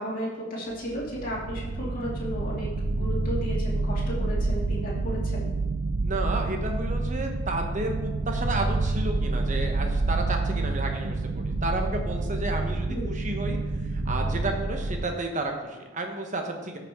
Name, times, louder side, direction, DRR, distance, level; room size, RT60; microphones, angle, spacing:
voice 1, 0.0-5.5 12.9-13.2, equal, 45° left, -6 dB, 2.7 m, -34 dB
sound 1, 0.7-15.1, right 3 dB, 85° right, 0.7 m, -28 dB
voice 2, 6.0-13.6 13.9-16.8, right 2 dB, 35° right, 3 dB, 1.1 m, -32 dB
13.5 x 5.9 x 3.7 m, 1.2 s
head